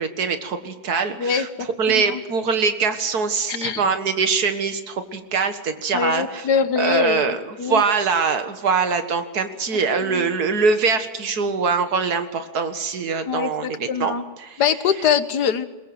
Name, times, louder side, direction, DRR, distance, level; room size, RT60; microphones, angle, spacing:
voice 1, 0.0-1.5 1.8-6.5 6.8-14.1 14.4-14.6, right 5 dB, 65° right, 8 dB, 2.1 m, -23 dB
voice 2, 1.2-2.2 3.5-3.8 5.9-7.8 10.1-10.3 13.3-14.2 14.6-15.7, left 7 dB, 75° left, 11 dB, 1.8 m, -23 dB
22.0 x 20.5 x 7.8 m, 1.2 s
omnidirectional pair, 1.8 m